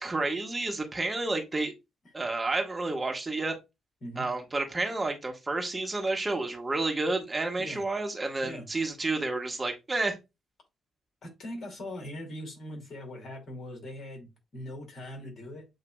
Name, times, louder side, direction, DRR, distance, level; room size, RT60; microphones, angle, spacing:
voice 1, 0.0-1.7 2.1-3.6 4.2-10.2, right 2 dB, 25° right, 1.3 m, -30 dB
voice 2, 11.2-15.7, left 1 dB, 50° left, 2.3 m, -41 dB
7.8 x 2.7 x 2.3 m
hypercardioid pair, 40°, 0 cm